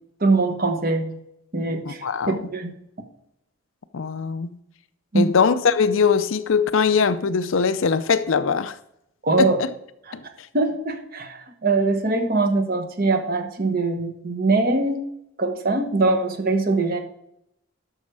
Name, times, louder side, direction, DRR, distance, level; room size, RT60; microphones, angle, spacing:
voice 1, 0.2-1.2 1.5-2.7 5.1-5.2 9.2-9.6 10.5-15.0 15.4-17.0, right 3 dB, 45° right, 1.1 m, -22 dB
voice 2, 1.9-2.4 3.9-4.5 5.1-8.8 9.4-9.7 10.1-10.2, left 5 dB, 65° left, 0.5 m, -21 dB
11.5 x 6.4 x 4.7 m
head